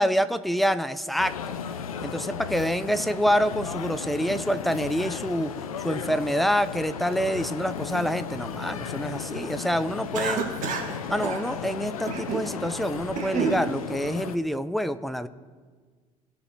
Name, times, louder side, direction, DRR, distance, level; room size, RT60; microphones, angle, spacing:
voice 1, 0.0-1.6 2.0-5.5 5.8-10.4 11.1-15.3, equal, ahead, 12 dB, 0.5 m, -26 dB
sound 1, 1.2-14.4, left 7 dB, 80° left, 0.5 m, -35 dB
Cough, 10.1-10.9 11.2-11.4 12.1-12.5 12.9-13.6, right 6 dB, 45° right, 1.4 m, -29 dB
17.0 x 5.9 x 2.8 m, 1.5 s
figure-of-eight pair, 60°, 18 cm